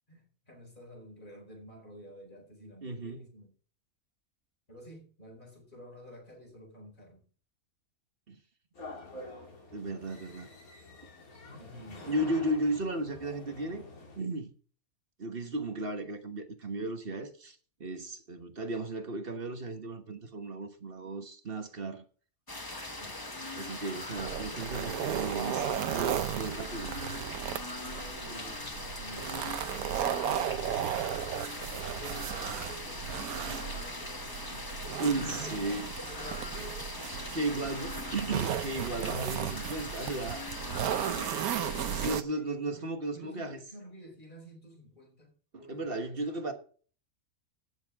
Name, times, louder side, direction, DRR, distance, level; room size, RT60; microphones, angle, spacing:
voice 1, 0.1-3.5 4.7-7.2 11.6-12.2 22.9-23.2 27.7-31.2 31.5-35.5 36.0-37.0 37.3-38.1 40.9-46.5, equal, 35° left, 4.5 m, -50 dB
voice 2, 2.8-3.3 8.3-8.4 9.7-10.5 12.1-13.8 14.2-14.5 15.2-22.0 23.6-26.9 35.0-35.9 37.3-40.5 41.9-43.6 45.5-46.5, right 2 dB, 40° right, 1.5 m, -35 dB
sound 1, 8.8-14.2, left 2 dB, 80° left, 3.0 m, -47 dB
sound 2, 22.5-42.2, left 2 dB, 15° left, 1.2 m, -40 dB
sound 3, 24.2-42.2, right 10 dB, 90° right, 1.2 m, -35 dB
16.5 x 7.3 x 3.6 m
omnidirectional pair, 1.5 m